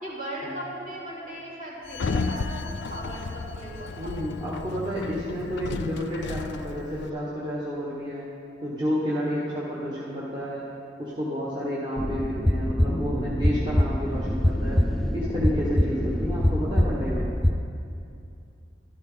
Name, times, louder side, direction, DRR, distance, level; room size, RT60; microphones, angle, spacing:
voice 1, 0.0-4.2, right 1 dB, 50° right, -7 dB, 3.6 m, -37 dB
Sliding door, 1.9-7.1, left 4 dB, 65° left, 0.4 m, -33 dB
voice 2, 4.0-8.2 8.6-10.6 11.0-14.8 15.1-17.3, equal, 25° right, -7 dB, 1.3 m, -30 dB
sound 1, 12.0-17.5, left 1 dB, ahead, 0.5 m, -24 dB
13.0 x 12.5 x 3.9 m, 2.5 s
head